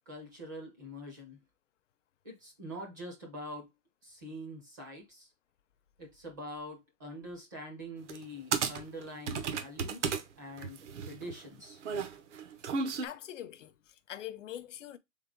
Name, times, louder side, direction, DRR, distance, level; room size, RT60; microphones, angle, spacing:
voice 1, 0.1-1.4 2.2-3.7 4.0-5.3 6.0-11.8, equal, 15° right, 0.5 m, -45 dB
sound 1, 8.1-8.2 8.5-10.2 10.6-13.1, right 5 dB, 60° right, 0.8 m, -34 dB
voice 2, 13.0-15.0, left 11 dB, 65° left, 0.6 m, -43 dB
3.7 x 3.4 x 3.6 m
hypercardioid pair, 170°, 40 cm